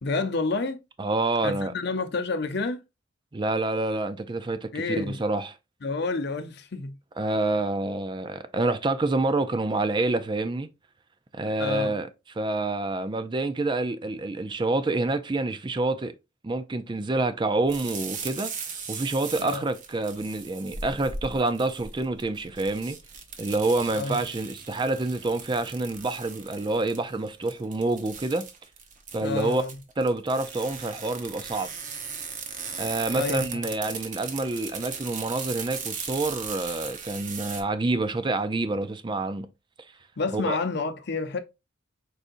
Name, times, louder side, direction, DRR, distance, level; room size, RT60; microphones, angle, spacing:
voice 1, 0.0-0.8 1.4-2.8 4.7-5.2 5.8-6.9 11.6-12.0 19.4-19.6 23.9-24.2 29.2-29.8 33.1-33.6 40.2-41.4, left 3 dB, 60° left, 0.7 m, -29 dB
voice 2, 1.0-1.7 3.3-4.7 5.0-5.5 7.2-10.7 11.3-12.1 12.3-16.1 16.4-18.5 18.9-23.0 23.4-28.5 29.1-29.6 30.0-31.7 32.8-39.5 40.3-40.6, right 2 dB, 25° right, 0.4 m, -27 dB
sound 1, 17.7-37.6, right 5 dB, 40° right, 0.9 m, -38 dB
4.8 x 4.0 x 2.6 m
head